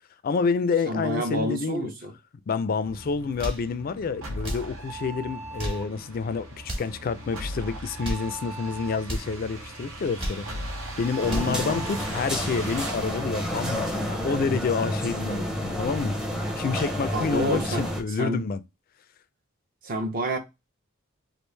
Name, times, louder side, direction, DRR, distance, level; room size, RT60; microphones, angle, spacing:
voice 1, 0.2-1.9 2.5-10.4 11.0-18.6, left 5 dB, 45° left, 0.3 m, -28 dB
voice 2, 0.9-2.1 11.5-11.8 17.1-17.8 18.2-18.4 19.8-20.4, right 1 dB, 45° right, 0.7 m, -29 dB
sound 1, 2.8-14.3, right 1 dB, 85° right, 1.1 m, -38 dB
sound 2, 3.2-3.7 4.4-4.7 5.4-5.9 6.6-7.0 7.8-8.3 9.0-9.3 10.0-10.5 11.1-11.6, equal, 25° right, 1.1 m, -33 dB
sound 3, 11.2-18.0, equal, 5° right, 0.6 m, -30 dB
3.1 x 2.4 x 3.2 m
head